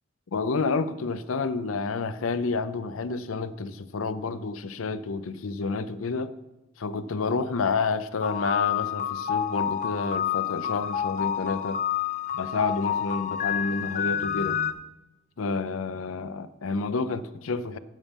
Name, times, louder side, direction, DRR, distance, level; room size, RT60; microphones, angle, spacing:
voice 1, 0.3-6.3 6.8-11.8 12.3-14.6 15.4-17.8, left 4 dB, 80° left, 0.6 m, -29 dB
sound 1, 8.2-14.7, left 9 dB, 40° left, 0.7 m, -28 dB
11.5 x 5.3 x 7.2 m
head